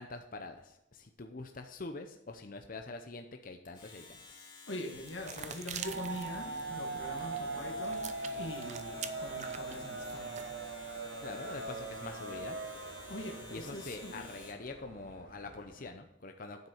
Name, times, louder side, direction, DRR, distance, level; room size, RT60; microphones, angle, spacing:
voice 1, 0.0-4.2 11.2-12.6 13.5-16.7, left 3 dB, 45° left, 5 dB, 0.7 m, -45 dB
Domestic sounds home sounds, 3.6-14.7, left 3 dB, 25° left, 2.6 m, -53 dB
voice 2, 4.7-8.1 8.4-10.5 13.1-14.2, left 1 dB, 80° left, 3 dB, 1.8 m, -43 dB
sound 1, 4.9-10.6, right 7 dB, 40° right, 0.6 m, -47 dB
sound 2, 5.8-15.9, right 3 dB, 70° right, 1.0 m, -41 dB
9.5 x 7.4 x 4.5 m, 0.89 s
head